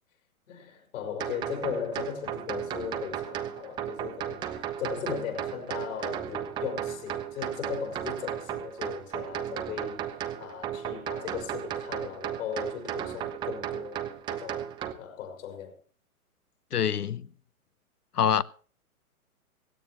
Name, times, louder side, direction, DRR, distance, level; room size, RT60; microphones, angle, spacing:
voice 1, 0.5-10.1 10.4-14.0 14.3-14.7 15.0-15.8, left 7 dB, 55° left, 5.4 m, -37 dB
sound 1, 1.2-14.9, right 10 dB, 10° right, 0.6 m, -35 dB
voice 2, 16.7-17.3 18.1-18.4, left 8 dB, 85° left, 0.8 m, -25 dB
17.5 x 16.5 x 3.1 m
hypercardioid pair, 125°, 45 cm